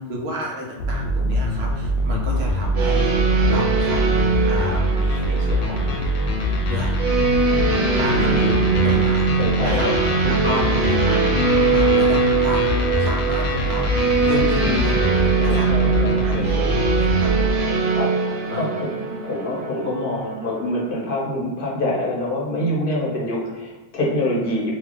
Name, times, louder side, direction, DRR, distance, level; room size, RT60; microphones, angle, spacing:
voice 1, 0.1-3.2 3.5-4.2 4.5-6.0 6.6-7.0 8.0-9.3 9.6-9.9 10.2-11.2 11.7-12.7 13.0-13.9 14.2-15.0 15.4-15.7 16.2-16.6 16.9-17.5 18.5-18.7, equal, 70° right, -1 dB, 0.9 m, -30 dB
sound 1, 0.8-17.5, equal, 90° left, 0.9 m, -23 dB
sound 2, 2.8-20.8, right 4 dB, 55° right, 0.4 m, -22 dB
voice 2, 9.4-10.7 14.6-14.8 15.4-16.8 17.9-18.3 18.5-24.7, left 1 dB, 60° left, -4 dB, 0.9 m, -26 dB
2.7 x 2.4 x 3.5 m, 1.1 s
omnidirectional pair, 1.1 m